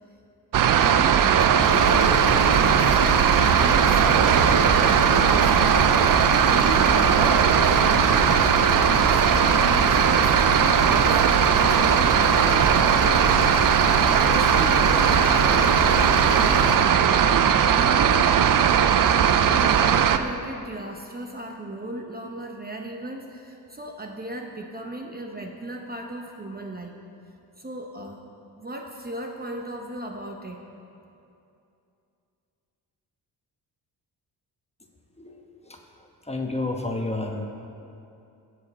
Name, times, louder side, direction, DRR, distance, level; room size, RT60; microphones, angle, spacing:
sound 1, 0.5-20.2, right 8 dB, 50° right, 0.6 m, -19 dB
voice 1, 0.6-13.4 13.7-17.2 17.7-18.4 19.2-27.0 27.6-30.6, right 1 dB, 20° right, 2 dB, 1.0 m, -36 dB
sound 2, 1.6-16.8, left 4 dB, 55° left, 1.5 m, -29 dB
voice 2, 36.3-37.4, left 2 dB, 15° left, 2 dB, 1.3 m, -29 dB
16.0 x 6.7 x 4.3 m, 2.7 s
cardioid pair, 70°, 42 cm